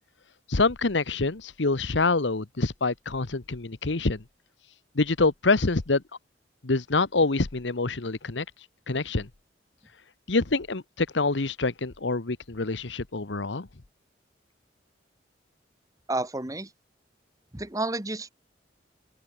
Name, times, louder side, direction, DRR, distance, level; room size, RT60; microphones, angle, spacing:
voice 1, 0.5-4.2 4.9-6.0 6.6-8.4 8.9-9.3 10.3-13.7, left 3 dB, 80° left, 1.2 m, -26 dB
voice 2, 16.1-16.7 17.5-18.3, right 2 dB, 20° right, 1.6 m, -30 dB
open air
head